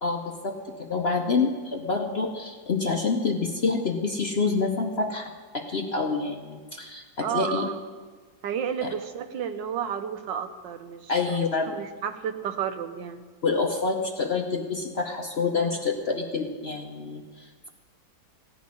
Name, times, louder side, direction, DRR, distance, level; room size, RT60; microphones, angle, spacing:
voice 1, 0.0-7.7 8.8-8.9 11.1-11.7 13.4-17.7, left 4 dB, 50° left, 3 dB, 0.8 m, -27 dB
voice 2, 7.2-7.8 8.4-11.4 11.7-13.2, right 8 dB, 80° right, 9 dB, 1.6 m, -32 dB
15.5 x 6.3 x 9.6 m, 1.4 s
omnidirectional pair, 1.9 m